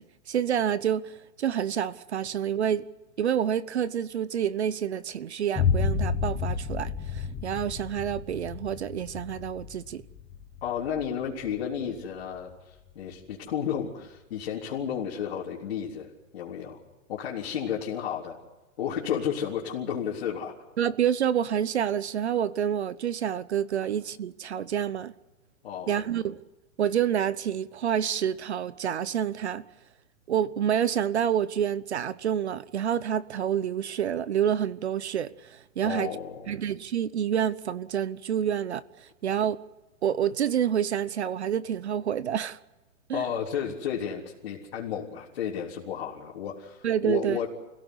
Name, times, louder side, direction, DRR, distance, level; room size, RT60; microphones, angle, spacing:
voice 1, 0.0-2.8 3.2-10.0 20.8-25.1 25.9-26.4 26.8-29.6 30.3-36.1 36.5-39.6 40.0-42.6 43.1-43.2 46.8-47.4, right 9 dB, 50° right, 0.8 m, -28 dB
Boom, 5.6-13.4, left 6 dB, 5° left, 0.7 m, -32 dB
voice 2, 10.6-16.8 17.1-18.4 18.8-20.5 25.6-26.1 35.8-36.5 43.1-47.5, left 8 dB, 40° left, 3.7 m, -32 dB
29.0 x 17.0 x 8.2 m
hypercardioid pair, 175°, 42 cm